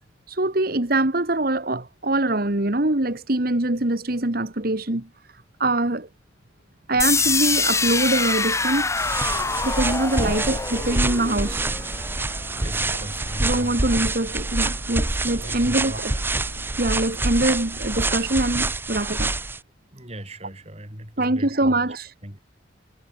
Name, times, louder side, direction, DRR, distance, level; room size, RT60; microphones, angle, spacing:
voice 1, 0.3-5.1 5.6-6.1 6.9-8.9 9.6-11.7 13.4-16.1 16.8-19.3 21.2-22.1, right 2 dB, 50° right, 1.7 m, -23 dB
sound 1, 7.0-12.9, left 4 dB, 15° left, 2.3 m, -25 dB
sound 2, 7.0-18.7, right 1 dB, 80° right, 3.5 m, -43 dB
sound 3, 9.0-19.6, right 2 dB, 10° right, 0.5 m, -27 dB
voice 2, 12.6-13.9 15.2-16.2 19.9-21.9 22.2-22.4, right 1 dB, 35° right, 6.1 m, -38 dB
head